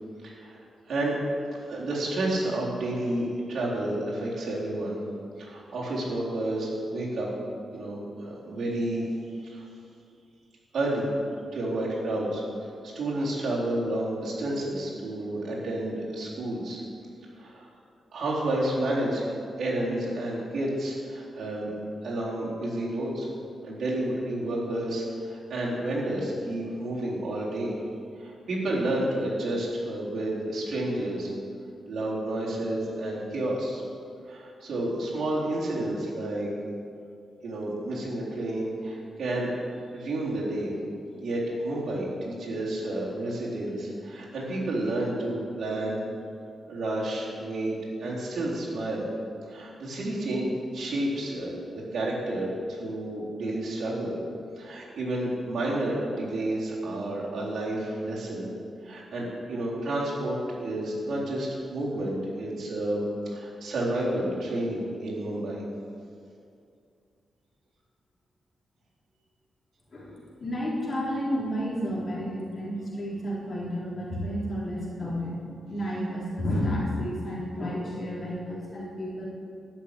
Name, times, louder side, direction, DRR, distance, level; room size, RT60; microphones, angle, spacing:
voice 1, 0.2-0.6 0.9-1.1 1.5-5.0 5.4-7.3 7.7-9.0 9.4-9.7 10.7-11.1 11.5-12.4 12.8-16.8 17.4-17.7 18.1-19.3 19.6-21.7 22.0-23.3 23.6-27.7 28.2-31.3 31.9-33.8 34.3-36.5 37.4-39.5 39.9-40.7 41.2-46.0 46.7-49.0 49.5-54.2 54.6-58.5 58.8-63.0 63.3-65.6, right 1 dB, 65° right, -6 dB, 3.9 m, -30 dB
voice 2, 69.9-79.3, equal, 35° left, -5 dB, 3.7 m, -31 dB
12.0 x 6.7 x 9.0 m, 2.4 s
wide cardioid pair, 125°, 0 cm